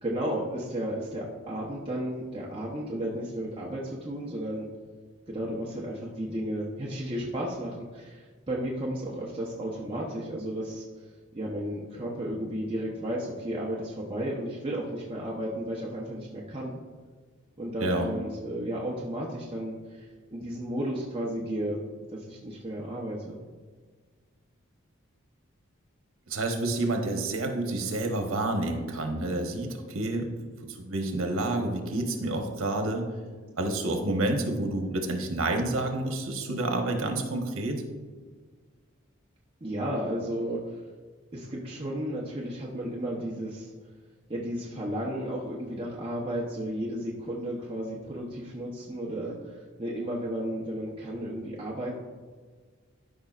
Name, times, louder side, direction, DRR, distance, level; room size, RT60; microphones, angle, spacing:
voice 1, 0.0-4.7 5.3-10.8 11.3-16.8 17.6-21.8 22.1-23.4 39.6-40.8 41.3-43.7 44.3-52.0, right 1 dB, 25° right, -4 dB, 0.8 m, -33 dB
voice 2, 17.8-18.1 26.3-30.3 30.6-33.1 33.6-37.8, right 2 dB, 80° right, 4 dB, 1.1 m, -29 dB
13.0 x 5.4 x 2.4 m, 1.5 s
head